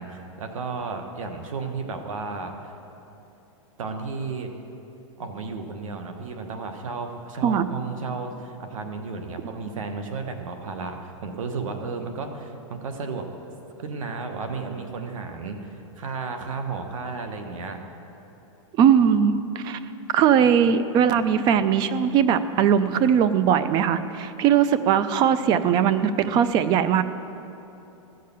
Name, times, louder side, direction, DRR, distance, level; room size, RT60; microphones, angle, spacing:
voice 1, 0.0-2.7 3.8-4.5 5.2-13.3 13.8-17.8, right 4 dB, 85° right, 5 dB, 1.3 m, -33 dB
voice 2, 18.8-19.8 20.1-27.0, right 8 dB, 25° right, 13 dB, 0.4 m, -20 dB
14.5 x 6.7 x 6.8 m, 3.0 s
supercardioid pair, 150°, 17 cm